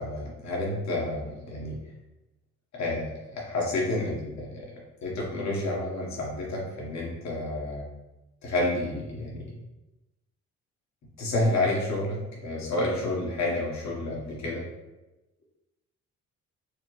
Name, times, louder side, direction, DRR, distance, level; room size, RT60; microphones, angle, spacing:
voice 1, 0.0-1.8 2.7-4.7 5.0-7.8 8.4-9.5 11.2-14.7, left 2 dB, 65° left, -3 dB, 1.4 m, -30 dB
6.5 x 2.2 x 3.2 m, 1.0 s
cardioid pair, 90°, 30 cm